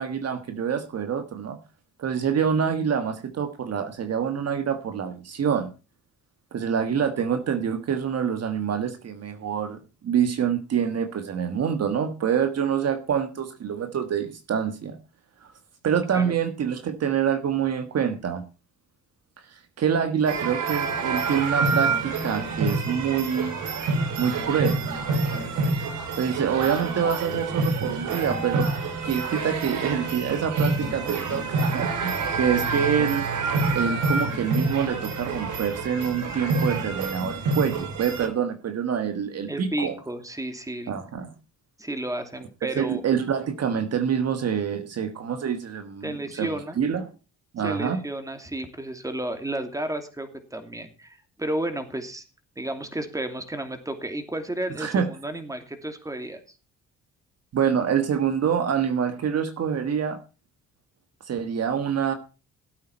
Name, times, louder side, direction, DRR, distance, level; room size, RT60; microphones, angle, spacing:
voice 1, 0.0-1.6 2.0-5.7 6.5-15.0 15.4-15.5 15.8-18.4 19.5-23.6 24.2-24.8 26.2-28.7 29.0-33.3 33.7-39.9 40.9-41.3 42.8-47.0 47.5-48.0 54.8-55.1 57.5-60.2 61.2-62.1, right 7 dB, 55° right, 8 dB, 1.6 m, -26 dB
sound 1, 20.3-38.3, right 3 dB, 80° right, 3.1 m, -27 dB
voice 2, 39.5-40.9 41.8-43.0 46.0-46.8 47.6-52.2 52.6-56.4, right 1 dB, 10° right, 7 dB, 2.7 m, -32 dB
16.5 x 8.6 x 4.3 m, 0.33 s
cardioid pair, 90°, 30 cm